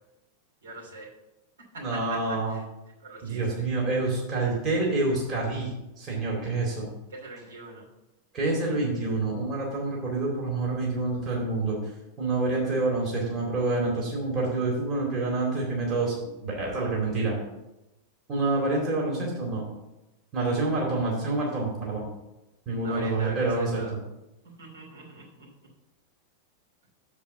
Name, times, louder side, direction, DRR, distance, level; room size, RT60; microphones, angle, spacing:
voice 1, 0.6-1.1 1.7-2.6 3.0-3.5 7.1-7.9 22.8-23.9 24.6-25.5, right 2 dB, 65° right, -4 dB, 2.9 m, -42 dB
voice 2, 1.8-2.6 3.2-5.7 6.0-6.9 8.3-11.8 12.2-16.2 16.4-17.4 18.3-19.7 20.3-22.1 22.7-23.8, right 2 dB, 30° right, -2 dB, 2.4 m, -27 dB
7.1 x 4.9 x 6.9 m, 0.97 s
figure-of-eight pair, 90°, 0 cm